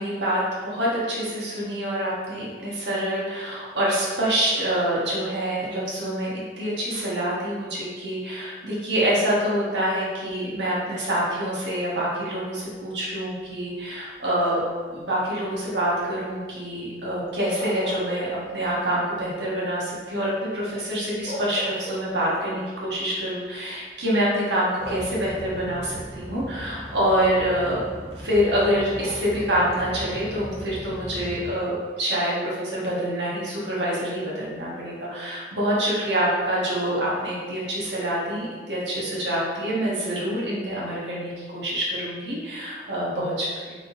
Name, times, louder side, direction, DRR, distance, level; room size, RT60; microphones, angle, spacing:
voice 1, 0.0-14.6 14.9-27.8 28.2-43.7, equal, 80° right, -6 dB, 1.1 m, -26 dB
sound 1, 14.4-14.9 17.3-18.7 19.1-19.2 20.8-20.9 21.2-22.4 23.4-23.5 24.8-25.5 28.5-29.4, equal, 45° right, 1.4 m, -36 dB
sound 2, 24.8-31.5, equal, 15° left, 0.6 m, -38 dB
3.8 x 3.6 x 2.6 m, 1.5 s
head